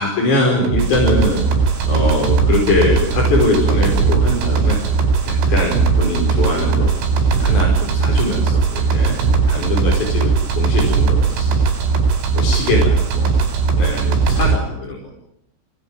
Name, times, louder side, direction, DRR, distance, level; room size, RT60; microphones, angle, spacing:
voice 1, 0.0-1.4 1.8-4.8 5.3-6.9 7.4-9.2 9.5-11.5 12.3-13.3 13.8-15.0, left 2 dB, 40° left, -2 dB, 6.4 m, -21 dB
sound 1, 0.6-14.6, right 5 dB, 75° right, 6.8 m, -18 dB
25.5 x 19.0 x 9.1 m, 0.77 s
omnidirectional pair, 5.6 m